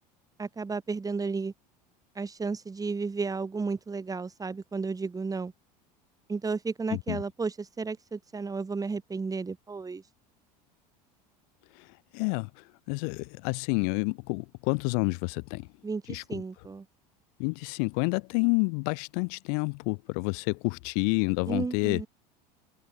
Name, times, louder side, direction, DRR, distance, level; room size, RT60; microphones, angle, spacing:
voice 1, 0.4-1.5 2.2-5.5 6.3-10.0 15.8-16.9 21.5-22.1, right 4 dB, 15° right, 1.8 m, -33 dB
voice 2, 6.9-7.2 11.7-15.7 16.1-16.4 17.4-22.1, left 40 dB or more, 65° left, 2.0 m, -29 dB
hypercardioid pair, 80°, 21 cm